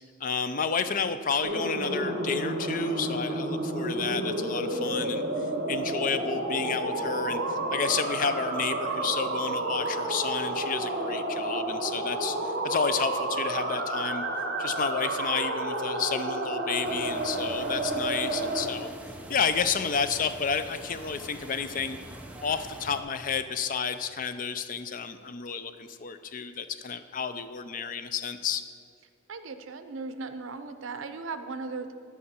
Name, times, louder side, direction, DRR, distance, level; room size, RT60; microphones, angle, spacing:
voice 1, 0.2-5.2 5.7-14.2 14.6-18.9 19.3-22.0 22.4-28.6, left 6 dB, 45° left, 11 dB, 0.4 m, -31 dB
sound 1, 1.4-18.7, right 2 dB, 55° right, 0.9 m, -30 dB
sound 2, 16.8-23.0, right 1 dB, 5° right, 0.5 m, -44 dB
voice 2, 29.3-31.9, right 4 dB, 80° right, 10 dB, 0.6 m, -37 dB
14.0 x 4.9 x 4.3 m, 2.4 s
head